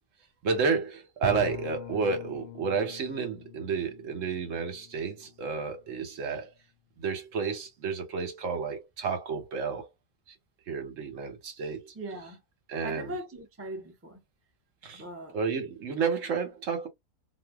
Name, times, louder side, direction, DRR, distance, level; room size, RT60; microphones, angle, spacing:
voice 1, 0.4-6.5 7.0-9.9 10.7-11.9 12.7-13.1 14.8-15.0 15.3-16.9, right 5 dB, 75° right, 1.2 m, -31 dB
Bowed string instrument, 1.2-6.0, left 12 dB, 60° left, 0.7 m, -43 dB
voice 2, 11.9-12.4 12.8-14.2 14.9-15.4, right 1 dB, 15° right, 0.5 m, -40 dB
2.7 x 2.1 x 3.3 m
omnidirectional pair, 1.4 m